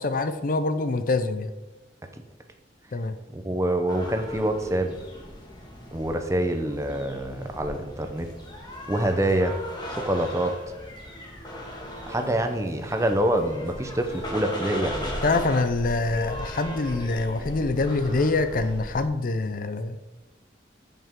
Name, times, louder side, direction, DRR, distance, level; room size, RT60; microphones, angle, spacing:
voice 1, 0.0-1.5 2.9-3.1 15.2-20.0, left 3 dB, 50° left, 10 dB, 0.5 m, -25 dB
voice 2, 3.3-5.0 5.9-8.3 8.9-9.6 9.9-10.5 12.1-15.2, right 1 dB, 15° right, 6 dB, 0.7 m, -26 dB
sound 1, 3.9-19.1, left 1 dB, 25° left, 1.7 m, -37 dB
14.5 x 5.4 x 3.7 m, 1.1 s
head